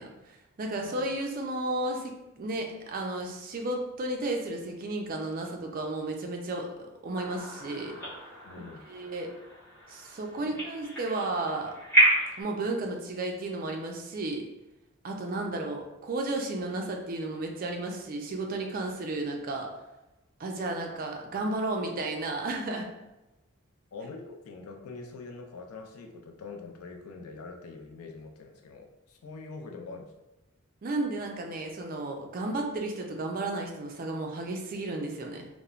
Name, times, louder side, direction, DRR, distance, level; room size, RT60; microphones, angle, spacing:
voice 1, 0.0-6.7 7.0-8.0 8.6-9.3 9.9-11.7 12.4-14.5 15.0-19.7 20.4-22.9 30.8-35.5, right 2 dB, 40° right, 2 dB, 0.4 m, -33 dB
sound 1, 7.1-12.4, right 1 dB, 10° left, 1.2 m, -30 dB
voice 2, 8.4-8.8 10.4-10.6 23.9-30.1, left 4 dB, 85° left, 3 dB, 0.4 m, -44 dB
3.0 x 2.0 x 2.4 m, 0.99 s
head